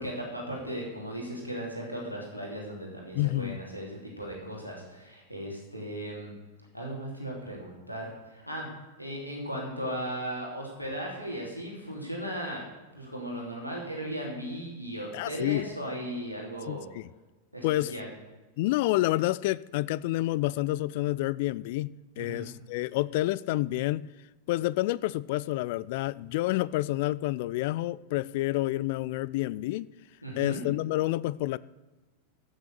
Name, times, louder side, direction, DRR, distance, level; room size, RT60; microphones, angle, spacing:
voice 1, 0.0-6.3 6.7-12.6 12.9-16.9 17.5-18.1 22.2-22.5 30.2-30.6, right 1 dB, 90° left, 3.2 m, -37 dB
voice 2, 3.1-3.6 15.1-15.7 16.7-17.1 17.6-17.9 18.6-24.1 24.5-29.9 30.4-31.6, left 17 dB, 50° left, 0.3 m, -29 dB
14.5 x 7.0 x 6.7 m
figure-of-eight pair, 90°, 0 cm